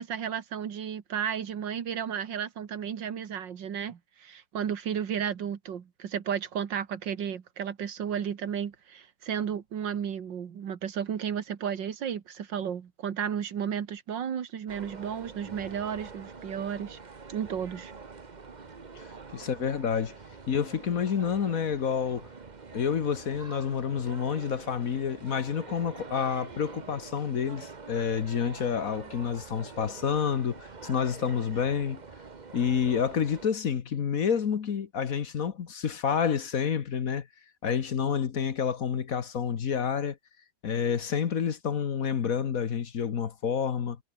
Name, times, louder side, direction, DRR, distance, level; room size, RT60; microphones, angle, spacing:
voice 1, 0.0-17.0 17.3-17.9, right 8 dB, 80° right, 2.2 m, -33 dB
sound 1, 14.7-33.5, right 4 dB, 30° right, 1.1 m, -45 dB
voice 2, 18.9-20.1 20.5-22.3 22.7-32.0 32.5-37.3 37.6-40.2 40.6-44.0, left 7 dB, 50° left, 1.5 m, -29 dB
omnidirectional pair, 2.0 m